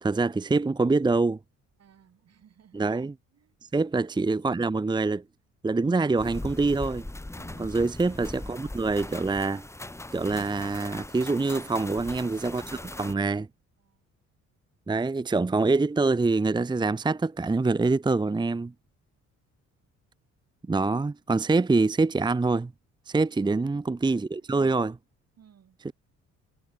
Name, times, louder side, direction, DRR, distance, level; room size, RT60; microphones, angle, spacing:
voice 1, 0.0-1.4 2.7-3.1 3.7-5.2 5.6-7.1 7.6-9.6 10.1-13.5 14.9-18.7 20.7-22.7 23.1-25.0 25.8-25.9, right 3 dB, 15° right, 0.7 m, -25 dB
voice 2, 1.8-2.9 3.3-3.6 7.4-7.8 11.5-12.0 13.8-14.0 23.3-23.9 24.3-24.5 25.4-25.8, right 8 dB, 55° right, 5.4 m, -57 dB
sound 1, 6.2-13.1, left 2 dB, 10° left, 1.6 m, -40 dB
cardioid pair, 90°, 30 cm